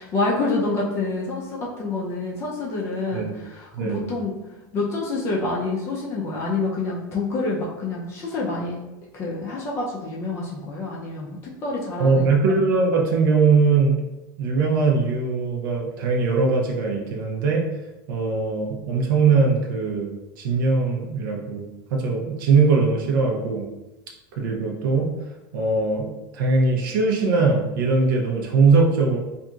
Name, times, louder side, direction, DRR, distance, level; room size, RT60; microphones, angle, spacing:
voice 1, 0.0-4.3 4.7-8.8 9.1-12.3, left 3 dB, 25° left, -4 dB, 0.4 m, -27 dB
voice 2, 3.7-4.0 12.0-14.0 14.4-17.6 18.1-20.1 20.4-21.6 21.9-23.7 24.4-25.1 25.5-29.2, right 4 dB, 80° right, 0 dB, 0.6 m, -21 dB
2.8 x 2.5 x 2.3 m, 1.0 s
supercardioid pair, 170°, 11 cm